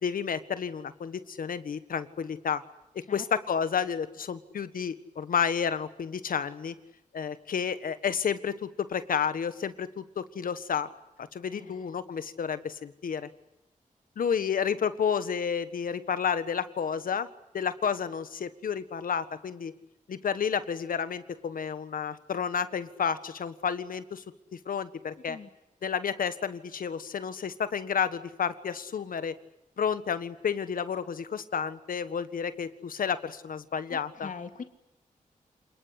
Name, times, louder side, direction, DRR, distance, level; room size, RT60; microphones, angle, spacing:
voice 1, 0.0-2.6 2.9-6.7 7.1-10.9 11.2-13.3 14.2-17.3 17.5-19.7 20.1-24.2 24.5-25.4 25.8-29.3 29.8-34.3, left 7 dB, 85° left, 13 dB, 1.5 m, -31 dB
voice 2, 34.2-34.6, left 5 dB, 65° left, 7 dB, 2.4 m, -40 dB
28.0 x 20.0 x 10.0 m, 0.89 s
wide cardioid pair, 90°, 14 cm